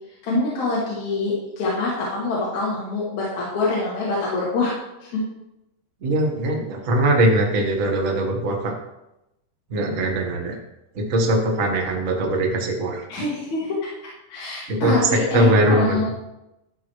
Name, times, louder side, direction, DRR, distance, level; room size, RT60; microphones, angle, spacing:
voice 1, 0.2-4.7 5.0-5.2 13.1-13.9 14.3-16.1, left 3 dB, 60° left, -6 dB, 2.9 m, -25 dB
voice 2, 6.0-8.7 9.7-10.5 10.9-13.0 14.7-14.9 15.3-16.0, right 1 dB, 60° right, 0 dB, 0.8 m, -21 dB
12.5 x 6.1 x 3.1 m, 0.90 s
omnidirectional pair, 3.8 m